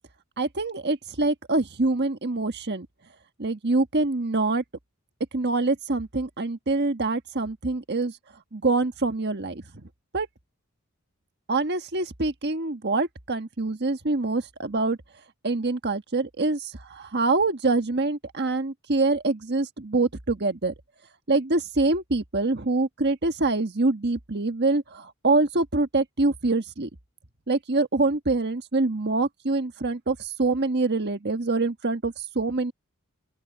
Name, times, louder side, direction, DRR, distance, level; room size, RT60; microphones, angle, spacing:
voice 1, 0.4-2.9 3.4-4.6 5.3-8.2 8.5-9.9 10.1-10.3 11.5-15.0 15.4-20.7 21.3-26.9 27.5-32.7, right 3 dB, 50° right, 1.5 m, -25 dB
open air
head